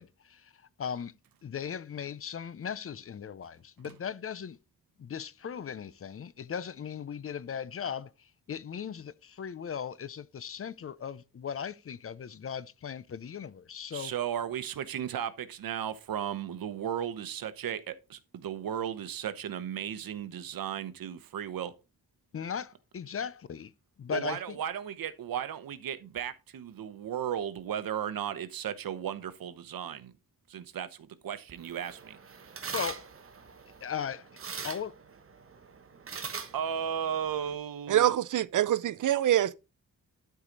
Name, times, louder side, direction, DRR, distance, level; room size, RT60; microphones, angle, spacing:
voice 1, 0.0-4.6 5.0-14.1 22.3-23.7 24.0-24.6 32.7-33.1 33.8-34.3 34.6-34.9, left 7 dB, 40° left, 0.6 m, -38 dB
voice 2, 13.9-21.7 24.1-30.1 30.5-32.2 36.5-38.2, right 9 dB, 85° right, 1.0 m, -35 dB
sound 1, 31.5-37.6, right 5 dB, 40° right, 1.1 m, -43 dB
voice 3, 37.9-39.5, right 12 dB, 65° right, 0.6 m, -25 dB
12.0 x 4.8 x 3.9 m
wide cardioid pair, 130°, 34 cm